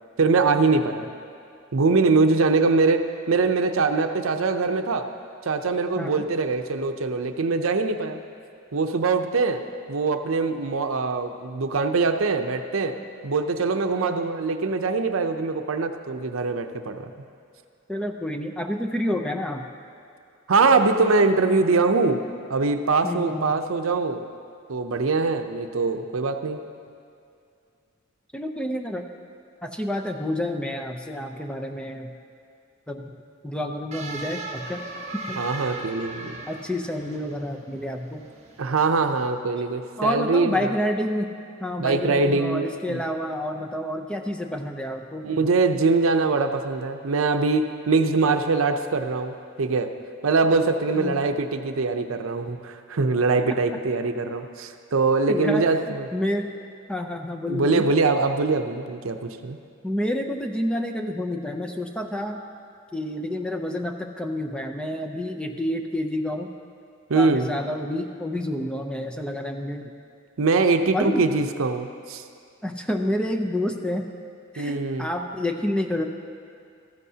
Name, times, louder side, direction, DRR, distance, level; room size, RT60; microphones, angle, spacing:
voice 1, 0.2-1.1 1.7-3.0 3.3-5.0 5.4-8.2 8.7-9.6 9.9-12.9 13.2-17.1 20.5-22.2 22.5-24.3 24.7-26.6 35.4-36.4 38.6-40.7 41.8-43.0 45.2-49.9 50.2-56.1 57.5-59.6 67.1-67.5 70.4-72.2 74.6-75.1, right 3 dB, 75° right, 7 dB, 0.6 m, -23 dB
voice 2, 17.9-19.7 23.0-23.6 28.3-29.0 29.6-32.1 32.9-33.1 33.4-34.8 35.3-35.4 36.5-38.3 40.0-41.3 41.6-45.2 50.9-51.2 55.3-56.5 56.9-57.9 59.8-62.4 62.9-66.5 67.1-69.9 70.9-71.2 72.6-74.1 74.5-76.1, left 1 dB, 5° left, 4 dB, 0.5 m, -29 dB
sound 1, 33.9-39.3, right 2 dB, 35° right, 1.4 m, -39 dB
15.0 x 14.0 x 2.8 m, 2.4 s
head